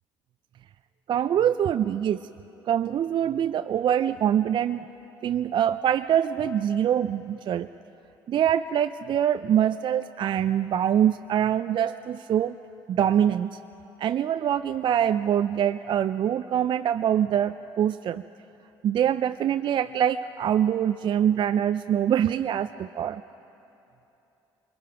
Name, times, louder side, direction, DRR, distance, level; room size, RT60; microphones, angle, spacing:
voice 1, 1.1-2.2 2.7-4.9 5.2-7.7 8.3-12.6 12.9-13.5 14.0-18.2 18.8-23.2, right 9 dB, 50° right, 10 dB, 0.5 m, -24 dB
25.0 x 22.5 x 5.9 m, 3.0 s
hypercardioid pair, 65°, 10 cm